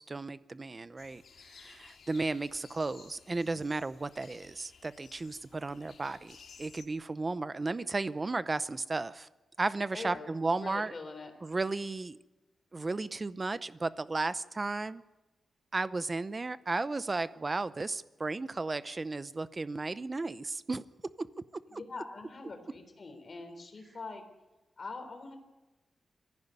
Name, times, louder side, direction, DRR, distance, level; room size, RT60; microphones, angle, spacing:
voice 1, 0.0-9.3 9.6-10.9 11.4-12.2 12.7-15.0 15.7-20.9 21.2-21.3 21.7-21.8, right 3 dB, 25° right, 15 dB, 0.7 m, -34 dB
sound 1, 1.0-6.9, left 6 dB, 70° left, 2.1 m, -56 dB
voice 2, 9.9-10.3 10.6-11.3 21.7-24.2 24.8-25.4, left 3 dB, 35° left, 4 dB, 3.7 m, -43 dB
22.5 x 15.0 x 9.5 m, 1.1 s
wide cardioid pair, 160°, 0 cm